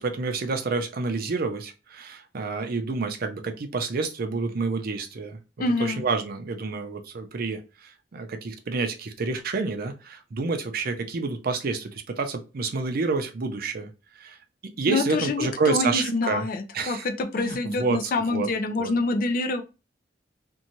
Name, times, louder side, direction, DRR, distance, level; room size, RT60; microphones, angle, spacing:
voice 1, 0.0-5.4 5.8-14.4 14.8-16.5 16.7-17.1 17.4-18.5 18.8-18.9, right 4 dB, 55° right, 6 dB, 0.5 m, -29 dB
voice 2, 5.6-6.0 14.9-19.6, left 3 dB, 50° left, 6 dB, 0.4 m, -26 dB
2.6 x 2.2 x 2.9 m, 0.30 s
head